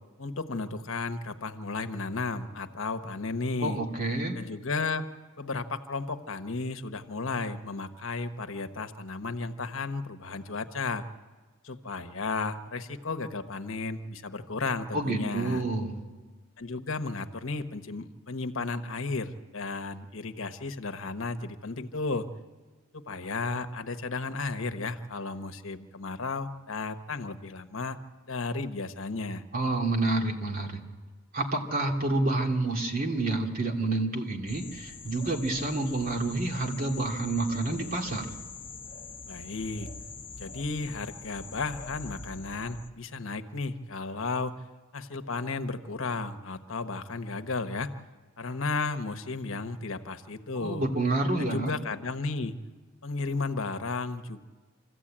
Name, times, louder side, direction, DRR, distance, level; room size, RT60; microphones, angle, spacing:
voice 1, 0.2-3.8 4.3-5.1 5.4-11.0 11.6-15.6 16.6-22.3 22.9-28.0 28.3-29.4 39.3-39.9 40.3-44.5 44.9-47.9 48.4-50.9 51.4-52.5 53.0-54.4, left 3 dB, 70° left, 8 dB, 1.1 m, -34 dB
voice 2, 3.6-4.4 14.9-15.9 29.5-30.8 31.3-38.3 50.6-51.7, right 2 dB, 45° right, 1 dB, 2.6 m, -28 dB
sound 1, 34.5-42.9, left 4 dB, 25° left, 1.6 m, -44 dB
26.5 x 14.5 x 8.7 m, 1.4 s
head